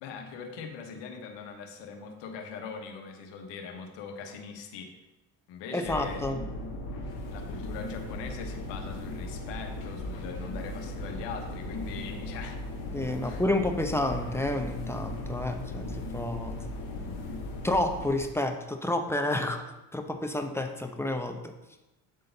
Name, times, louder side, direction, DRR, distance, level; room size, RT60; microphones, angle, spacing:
voice 1, 0.0-5.0 5.5-6.4 7.3-12.6 13.2-13.4, left 5 dB, 80° left, 4 dB, 1.1 m, -41 dB
voice 2, 5.7-6.4 12.9-15.9 16.1-16.6 17.6-19.7 19.9-21.5, left 1 dB, 5° left, 4 dB, 0.7 m, -29 dB
sound 1, 5.8-18.2, left 1 dB, 60° left, 1.3 m, -37 dB
8.4 x 3.8 x 3.9 m, 1.0 s
supercardioid pair, 80°, 42 cm